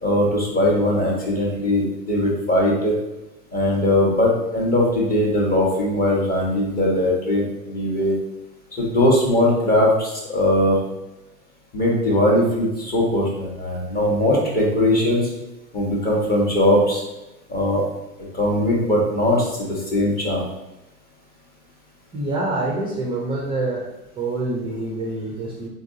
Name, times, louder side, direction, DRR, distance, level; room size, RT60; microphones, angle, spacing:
voice 1, 0.0-2.9 3.5-8.1 8.8-10.8 11.7-15.3 15.7-17.0 17.5-17.8 18.3-20.5, left 1 dB, 20° left, -3 dB, 1.2 m, -20 dB
voice 2, 22.1-23.9 24.2-25.7, right 2 dB, 10° right, -3 dB, 0.5 m, -26 dB
3.9 x 3.6 x 2.7 m, 0.96 s
figure-of-eight pair, 90°, 46 cm